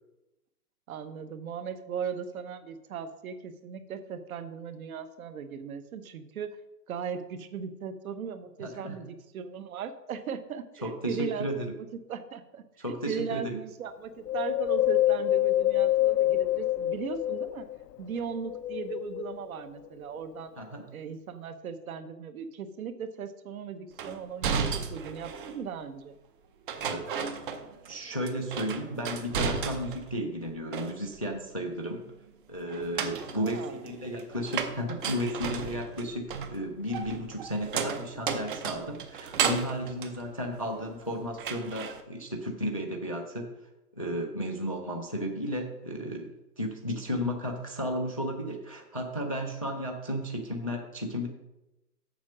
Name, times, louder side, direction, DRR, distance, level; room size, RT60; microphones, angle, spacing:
voice 1, 0.9-6.6 6.9-17.7 18.0-20.5 20.9-26.1 33.3-33.8, right 6 dB, 60° right, 10 dB, 1.1 m, -38 dB
voice 2, 8.6-9.0 10.8-11.7 12.8-13.6 20.6-20.8 26.8-27.0 27.9-32.0 32.5-36.3 36.5-43.5 43.9-51.3, equal, 25° left, 3 dB, 0.3 m, -33 dB
Wind, 14.3-17.8 18.4-19.6 20.2-20.3, left 14 dB, 75° left, 0.6 m, -26 dB
sound 1, 24.0-25.6 26.7-28.0 28.3-30.1 30.5-31.3 32.7-41.0 41.4-42.0, right 6 dB, 30° right, 0.7 m, -34 dB
7.3 x 6.1 x 6.1 m, 0.96 s
hypercardioid pair, 150°, 49 cm